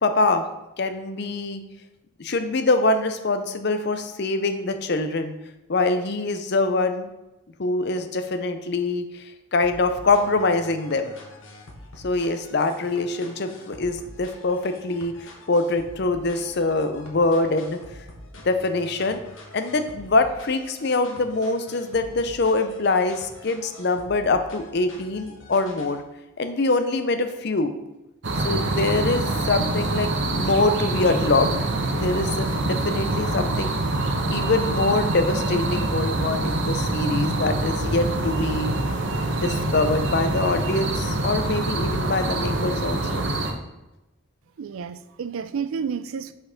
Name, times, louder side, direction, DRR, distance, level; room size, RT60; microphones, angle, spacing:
voice 1, 0.0-0.5 0.8-1.6 2.2-5.3 5.7-7.1 7.6-9.2 9.5-11.1 12.0-17.8 18.4-19.2 19.5-26.0 26.4-27.7 28.4-31.5 32.0-33.7 34.3-38.7 39.3-43.2, left 3 dB, 50° left, 9 dB, 0.6 m, -24 dB
sound 1, 9.6-26.0, left 1 dB, 70° left, 1.2 m, -45 dB
sound 2, 28.2-43.5, right 2 dB, 60° right, 0.9 m, -25 dB
voice 2, 44.6-46.3, right 6 dB, 75° right, 14 dB, 0.4 m, -30 dB
5.7 x 4.4 x 5.1 m, 0.98 s
head